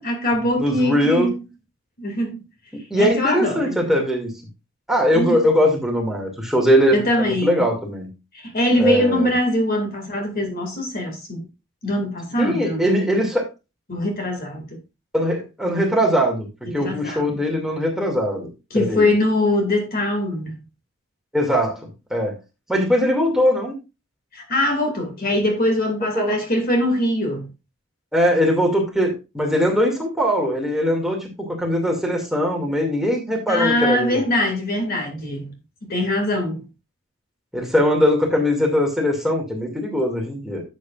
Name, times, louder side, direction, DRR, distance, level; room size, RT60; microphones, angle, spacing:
voice 1, 0.0-1.3 2.0-2.4 3.0-3.8 5.1-5.5 6.9-7.6 8.3-11.5 11.8-12.9 13.9-14.7 16.8-17.3 18.7-20.6 24.3-27.5 33.5-35.5 35.9-36.7, left 1 dB, 45° left, 2.4 m, -22 dB
voice 2, 0.6-1.3 2.7-4.3 4.9-8.1 8.8-9.3 12.4-13.5 15.1-18.5 18.7-19.1 21.3-21.8 22.1-22.4 22.7-23.7 26.1-26.4 28.1-34.2 37.5-40.6, equal, ahead, 2.3 m, -21 dB
11.5 x 7.6 x 2.5 m
head